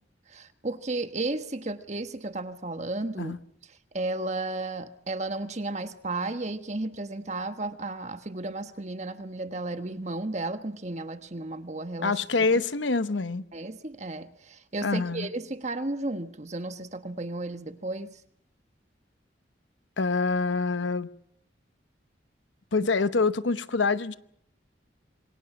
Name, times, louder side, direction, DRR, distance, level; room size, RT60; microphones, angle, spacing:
voice 1, 0.3-3.4 3.9-12.6 13.5-18.2, right 2 dB, 40° right, 1.3 m, -33 dB
voice 2, 12.0-13.4 14.8-15.3 20.0-21.1 22.7-24.2, left 4 dB, 85° left, 0.9 m, -26 dB
27.0 x 22.5 x 6.0 m
head